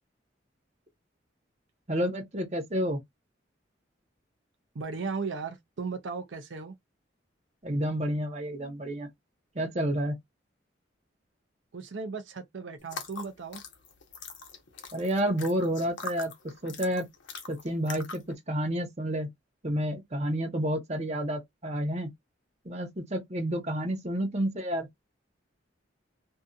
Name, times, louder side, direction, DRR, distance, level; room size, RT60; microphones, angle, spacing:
voice 1, 1.9-3.0 7.6-9.1 9.6-10.2 14.9-16.3 16.6-17.1 17.5-18.2 18.5-19.3 19.6-22.1 22.6-24.9, equal, 35° right, 0.8 m, -30 dB
voice 2, 4.7-6.8 11.7-13.6, right 4 dB, 75° right, 0.6 m, -36 dB
sound 1, 12.8-18.3, left 4 dB, 75° left, 0.8 m, -43 dB
2.7 x 2.6 x 2.3 m
head